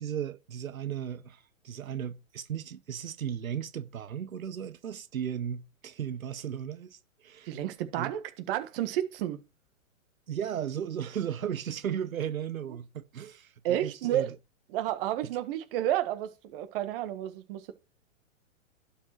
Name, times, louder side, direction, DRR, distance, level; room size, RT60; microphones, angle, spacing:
voice 1, 0.0-7.6 7.9-8.1 10.3-14.3, right 9 dB, 85° right, 0.9 m, -36 dB
voice 2, 7.4-9.4 13.6-14.3 14.7-17.7, right 12 dB, 40° right, 1.5 m, -31 dB
11.5 x 5.2 x 4.4 m
hypercardioid pair, 130°, 40 cm